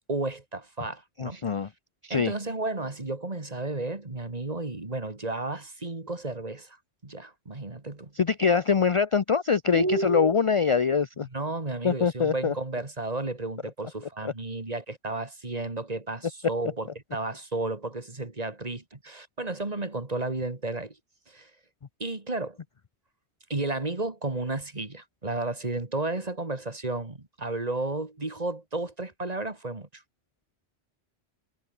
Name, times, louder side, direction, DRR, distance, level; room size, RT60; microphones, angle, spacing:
voice 1, 0.1-1.4 2.1-6.8 7.0-8.1 9.7-10.4 11.3-21.0 21.3-21.5 22.0-22.6 23.5-30.0, right 2 dB, 35° right, 2.3 m, -32 dB
voice 2, 1.2-1.7 2.0-2.3 8.2-11.3 11.8-12.5 14.2-14.3, left 6 dB, 40° left, 0.5 m, -24 dB
omnidirectional pair, 1.1 m